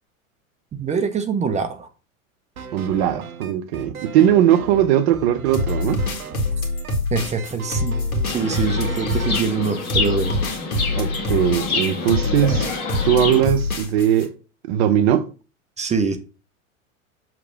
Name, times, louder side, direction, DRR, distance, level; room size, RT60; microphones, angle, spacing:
voice 1, 0.7-1.9 7.1-8.0 8.3-10.4 15.8-16.2, right 5 dB, 15° right, 0.7 m, -24 dB
sound 1, 2.6-9.5, right 6 dB, 85° right, 0.8 m, -37 dB
voice 2, 2.7-6.0 11.0-12.7 13.0-14.3 14.6-15.3, right 10 dB, 50° right, 0.9 m, -19 dB
sound 2, 5.5-14.3, left 2 dB, 75° left, 1.7 m, -25 dB
Chirp tweet, 8.2-13.4, left 4 dB, 35° left, 1.9 m, -27 dB
6.7 x 3.3 x 5.1 m
figure-of-eight pair, 90°, 42 cm